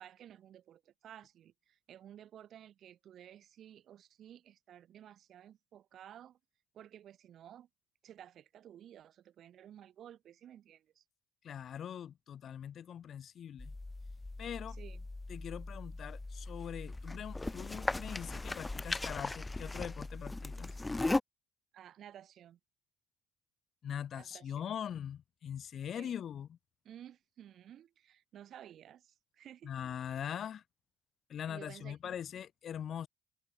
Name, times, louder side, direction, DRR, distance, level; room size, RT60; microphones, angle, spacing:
voice 1, 0.0-6.4 6.7-7.7 8.0-11.0 14.7-15.1 21.7-22.6 24.1-24.7 26.0-26.2 26.8-29.7 31.5-32.1, right 10 dB, 60° right, 4.9 m, -54 dB
voice 2, 11.4-13.7 14.4-14.8 15.3-20.8 23.8-26.5 29.6-30.6 31.3-33.1, left 9 dB, 55° left, 0.8 m, -42 dB
sound 1, 13.6-21.2, left 2 dB, 15° left, 0.9 m, -38 dB
hypercardioid pair, 65°, 0 cm